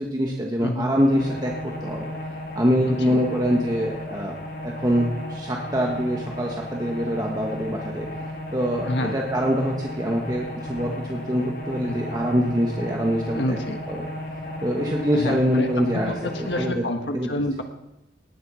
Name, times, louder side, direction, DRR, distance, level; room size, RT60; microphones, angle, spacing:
voice 1, 0.0-1.5 1.8-2.0 2.5-4.3 4.6-8.1 8.5-13.6 13.9-14.1 14.6-16.1 16.4-16.8 17.1-17.4, equal, 20° right, -1 dB, 1.3 m, -24 dB
voice 2, 0.6-0.9 2.9-3.2 8.9-9.1 11.9-12.0 13.3-13.8 15.1-15.7 15.9-17.6, left 1 dB, 75° left, 5 dB, 1.4 m, -28 dB
sound 1, 1.1-16.7, left 1 dB, 55° left, 2.4 m, -35 dB
19.0 x 7.6 x 6.3 m, 0.89 s
head